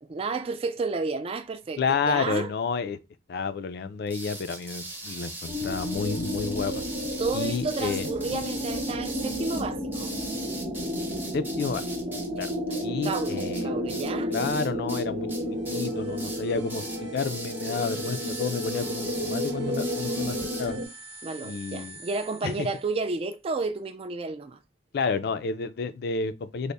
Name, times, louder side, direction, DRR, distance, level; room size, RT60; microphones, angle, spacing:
voice 1, 0.1-2.5 7.2-10.1 12.4-12.5 12.8-14.3 21.2-24.6, right 3 dB, 30° right, 0.3 m, -31 dB
voice 2, 1.8-3.0 3.3-6.8 7.3-8.1 11.3-11.8 12.4-12.5 12.8-14.0 14.3-20.8 21.4-22.0 22.4-22.7 24.9-26.7, left 5 dB, 60° left, 0.4 m, -30 dB
sound 1, 4.1-15.0 15.3-16.4 16.7-20.7, right 2 dB, 10° right, 0.7 m, -39 dB
sound 2, 5.5-20.9, left 1 dB, 50° right, 0.8 m, -32 dB
sound 3, 15.4-23.1, right 2 dB, 85° right, 0.9 m, -47 dB
3.4 x 2.1 x 4.0 m
head